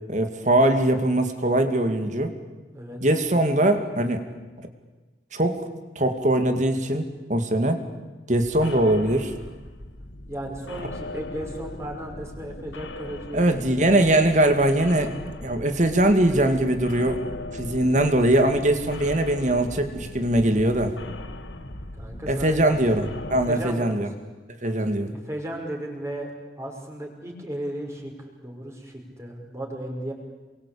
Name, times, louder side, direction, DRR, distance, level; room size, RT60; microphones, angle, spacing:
voice 1, 0.1-2.3 3.0-4.3 5.3-5.7 6.0-7.8 8.3-9.3 13.3-15.1 15.4-17.2 17.5-21.0 22.3-24.1 24.6-25.1, right 1 dB, 40° right, 7 dB, 2.4 m, -21 dB
sound 1, 8.3-23.5, left 1 dB, 90° left, 2.0 m, -38 dB
voice 2, 10.3-13.6 20.4-20.6 22.0-22.8 23.5-24.0 25.1-26.3 26.6-30.1, right 1 dB, 15° right, 1 dB, 5.7 m, -35 dB
28.0 x 23.5 x 8.7 m, 1.3 s
head